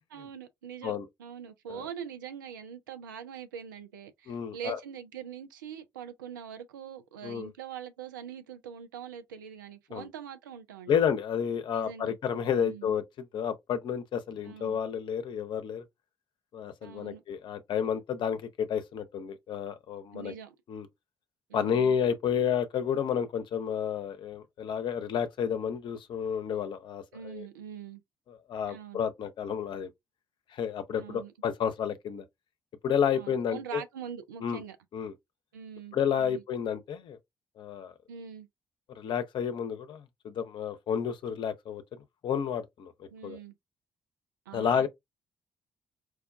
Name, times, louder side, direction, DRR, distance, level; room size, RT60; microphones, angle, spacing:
voice 1, 0.1-11.0 11.7-12.2 12.6-12.9 14.4-14.9 16.8-17.2 20.1-20.6 21.5-22.0 27.1-28.0 28.7-29.0 31.0-31.3 33.1-34.8 35.5-36.4 38.1-38.5 43.1-43.5 44.5-44.9, right 8 dB, 80° right, 0.4 m, -43 dB
voice 2, 4.3-4.8 7.2-7.5 9.9-10.1 10.9-15.8 16.5-20.3 20.7-20.9 21.5-27.4 28.3-29.9 30.5-32.2 32.8-33.8 34.4-34.6 34.9-35.1 35.9-37.2 37.6-37.9 39.0-41.8 42.2-43.4 44.5-44.9, left 8 dB, 50° left, 0.6 m, -31 dB
4.5 x 2.2 x 2.3 m
figure-of-eight pair, 40°, 10 cm